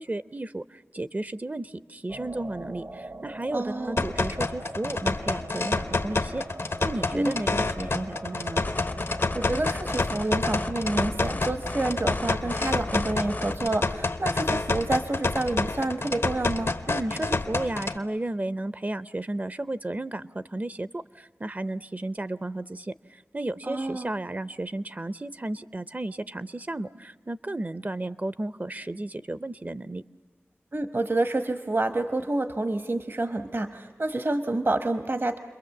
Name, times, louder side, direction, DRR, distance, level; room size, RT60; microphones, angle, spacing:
voice 1, 0.0-6.4 6.8-8.6 16.9-30.0, right 2 dB, 35° right, 14 dB, 0.7 m, -33 dB
sound 1, 2.1-10.4, right 2 dB, 70° right, 1.5 m, -43 dB
voice 2, 3.5-4.0 7.1-7.3 9.3-16.7 23.7-24.1 30.7-35.4, right 2 dB, 55° right, 9 dB, 1.2 m, -28 dB
sound 2, 4.0-18.0, left 3 dB, 75° left, 1.0 m, -28 dB
sound 3, 8.6-13.7, left 2 dB, 40° left, 0.7 m, -35 dB
29.5 x 22.0 x 7.2 m, 1.4 s
wide cardioid pair, 45°, 4 cm